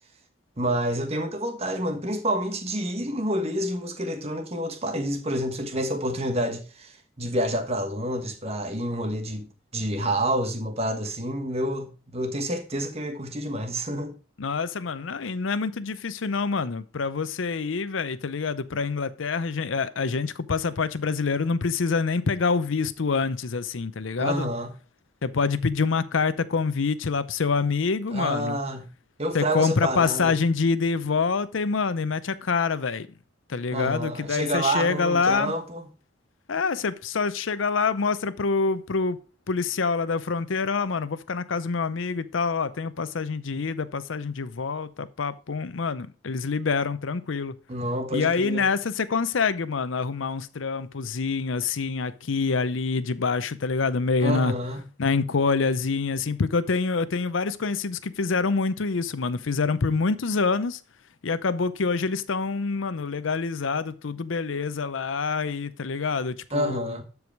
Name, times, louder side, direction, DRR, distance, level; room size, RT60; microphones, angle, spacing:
voice 1, 0.6-9.5 9.7-14.1 24.2-24.7 28.1-28.9 29.2-30.3 33.7-35.8 47.7-48.7 54.2-54.8 66.5-67.0, right 1 dB, 30° right, 1.3 m, -28 dB
voice 2, 14.4-24.5 25.2-28.6 29.3-33.1 33.5-35.5 36.5-39.2 39.5-47.6 48.1-54.5 55.0-60.8 61.2-67.0, left 4 dB, 85° left, 0.6 m, -26 dB
12.0 x 4.8 x 4.6 m
head